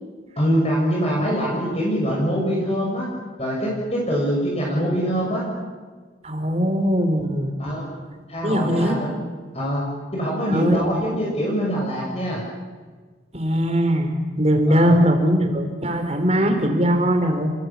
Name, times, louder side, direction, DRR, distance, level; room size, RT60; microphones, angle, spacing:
voice 1, 0.4-3.1 3.4-5.5 7.6-7.9 8.3-9.2 9.5-12.4 14.7-14.9, equal, 35° left, -3 dB, 6.5 m, -24 dB
voice 2, 6.2-7.5 8.4-9.0 10.5-11.0 13.3-17.5, equal, 35° right, 5 dB, 4.2 m, -20 dB
30.0 x 20.5 x 8.6 m, 1.5 s
head